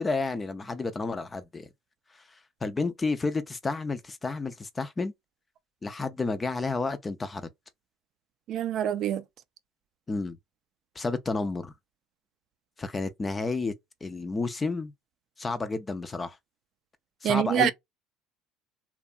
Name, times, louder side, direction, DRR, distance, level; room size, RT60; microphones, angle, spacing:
voice 1, 0.0-1.7 2.6-5.1 5.8-7.5 10.1-10.4 11.0-11.7 12.8-13.7 14.0-14.9 15.4-16.4 17.2-17.7, left 3 dB, 20° left, 0.4 m, -31 dB
voice 2, 8.5-9.2 17.2-17.7, right 10 dB, 50° right, 0.4 m, -25 dB
2.8 x 2.2 x 2.4 m
supercardioid pair, 120°, 0 cm